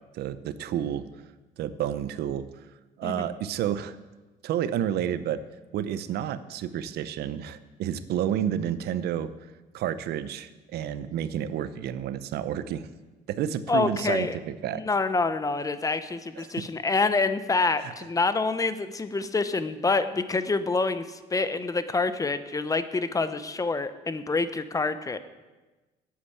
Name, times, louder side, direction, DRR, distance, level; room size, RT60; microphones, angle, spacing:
voice 1, 0.1-1.0 1.6-2.5 3.0-4.0 4.4-5.4 5.7-9.3 9.7-12.9 13.3-14.8 16.4-16.5 17.8-17.9, right 10 dB, 75° right, 13 dB, 0.7 m, -30 dB
voice 2, 3.0-3.3 13.7-14.4 14.7-25.2, left 3 dB, 20° left, 12 dB, 0.8 m, -27 dB
9.8 x 8.6 x 8.4 m, 1.2 s
cardioid pair, 110°, 17 cm